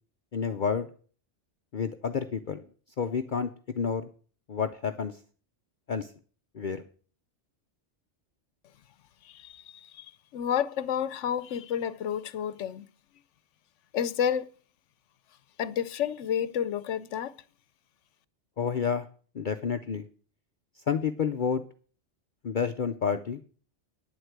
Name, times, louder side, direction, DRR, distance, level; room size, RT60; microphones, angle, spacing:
voice 1, 0.3-0.9 1.7-2.6 3.0-4.1 4.5-5.2 5.9-6.1 6.5-6.8 18.6-19.1 19.3-20.1 20.9-21.6 22.4-23.4, left 6 dB, 50° left, 0.8 m, -29 dB
voice 2, 9.2-12.8 13.9-14.5 15.6-17.3, left 9 dB, 80° left, 1.0 m, -30 dB
9.9 x 7.9 x 8.1 m
omnidirectional pair, 1.2 m